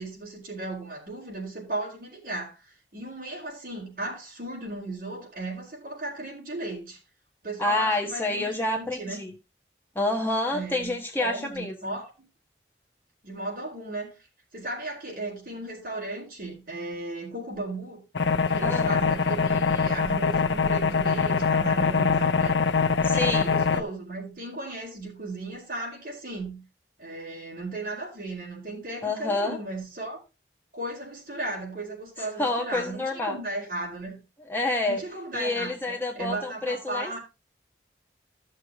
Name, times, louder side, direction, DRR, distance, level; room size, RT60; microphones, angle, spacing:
voice 1, 0.0-7.0 7.4-9.3 10.5-12.1 13.2-14.2 14.5-18.0 18.5-22.6 23.1-26.6 27.0-30.2 30.7-34.2 34.9-37.2, right 2 dB, 50° right, 4.6 m, -36 dB
voice 2, 7.6-9.3 9.9-12.0 18.6-18.9 23.0-23.5 29.0-29.6 32.4-33.4 34.5-35.0 35.3-37.2, left 2 dB, 10° left, 1.3 m, -28 dB
sound 1, 18.2-23.8, left 5 dB, 85° left, 0.7 m, -23 dB
14.5 x 6.6 x 2.9 m
head